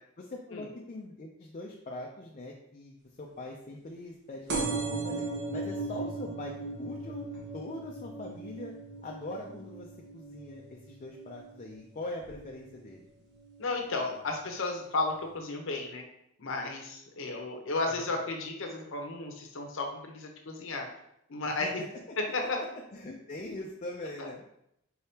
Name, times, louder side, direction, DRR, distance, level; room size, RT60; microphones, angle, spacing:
voice 1, 0.2-8.8 9.0-13.0 17.9-18.1 21.4-24.5, left 1 dB, 35° left, -1 dB, 0.4 m, -42 dB
sound 1, 4.5-11.7 12.2-12.7 13.5-13.6 13.8-13.9 14.2-14.3, right 3 dB, 55° right, 0.9 m, -37 dB
voice 2, 13.6-16.0 16.4-20.9 21.3-21.7 22.3-22.6, left 3 dB, 65° left, 2 dB, 0.8 m, -33 dB
4.6 x 3.5 x 2.8 m, 0.77 s
head